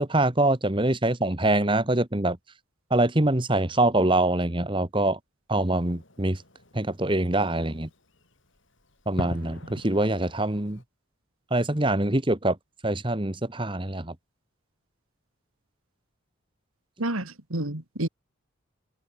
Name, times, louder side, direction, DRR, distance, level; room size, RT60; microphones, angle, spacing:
voice 1, 0.0-2.4 2.9-5.2 5.5-6.4 6.7-7.9 9.1-10.8 11.5-12.6 12.8-14.1, right 1 dB, 25° right, 1.5 m, -24 dB
Fireworks, 5.5-10.8, left 1 dB, 60° left, 6.0 m, -43 dB
voice 2, 17.0-18.1, right 1 dB, 80° right, 3.2 m, -29 dB
head